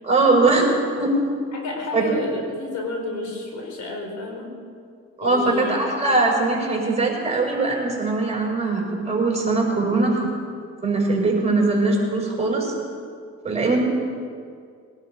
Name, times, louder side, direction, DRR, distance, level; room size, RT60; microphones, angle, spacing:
voice 1, 0.0-0.6 1.0-1.1 1.9-2.2 5.2-10.3 10.8-12.7 13.4-13.8, right 3 dB, 20° right, -1 dB, 5.1 m, -21 dB
voice 2, 1.5-4.5 5.2-5.7, left 3 dB, 70° left, 1 dB, 4.2 m, -30 dB
21.5 x 12.0 x 5.1 m, 2.2 s
cardioid pair, 90°, 30 cm